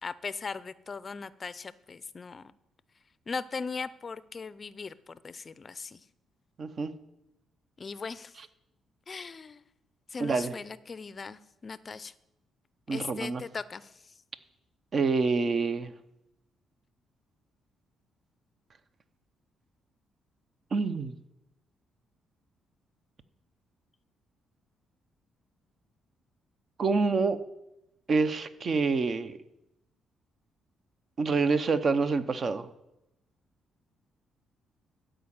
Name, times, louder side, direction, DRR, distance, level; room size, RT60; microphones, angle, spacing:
voice 1, 0.0-2.5 3.3-6.0 7.8-8.3 9.1-9.6 10.1-12.1 12.9-14.1, left 5 dB, 35° left, 17 dB, 0.5 m, -39 dB
voice 2, 6.6-6.9 10.2-10.5 12.9-13.4 14.9-15.9 20.7-21.1 26.8-27.4 28.1-29.4 31.2-32.7, right 4 dB, 45° right, 11 dB, 0.8 m, -27 dB
13.0 x 5.1 x 8.8 m, 0.89 s
cardioid pair, 90°, 0 cm